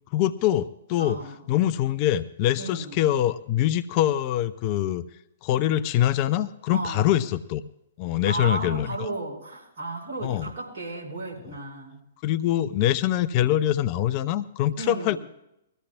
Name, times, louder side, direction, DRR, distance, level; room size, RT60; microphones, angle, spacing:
voice 1, 0.1-1.2 1.5-5.1 5.4-7.7 8.0-9.0 10.2-10.5 12.2-15.2, left 12 dB, 35° left, 13 dB, 0.5 m, -24 dB
voice 2, 1.0-1.4 2.5-3.0 6.7-7.2 8.2-12.0 14.8-15.2, right 2 dB, 55° right, -2 dB, 5.4 m, -34 dB
21.5 x 14.5 x 2.3 m, 0.83 s
figure-of-eight pair, 110°, 0 cm